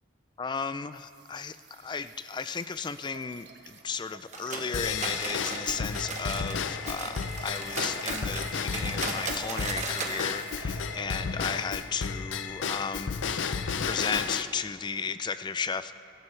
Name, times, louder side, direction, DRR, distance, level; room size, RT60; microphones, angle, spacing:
voice 1, 0.4-15.9, left 5 dB, 25° left, 13 dB, 0.3 m, -35 dB
sound 1, 0.9-11.7, right 5 dB, 60° right, 1.1 m, -50 dB
sound 2, 4.3-6.6 6.8-10.2 10.4-10.5 10.9-11.0 11.6-11.7, right 4 dB, 35° right, 1.3 m, -36 dB
Drum kit / Drum / Bell, 4.7-14.4, left 6 dB, 75° left, 0.5 m, -33 dB
23.5 x 13.0 x 3.3 m, 2.5 s
head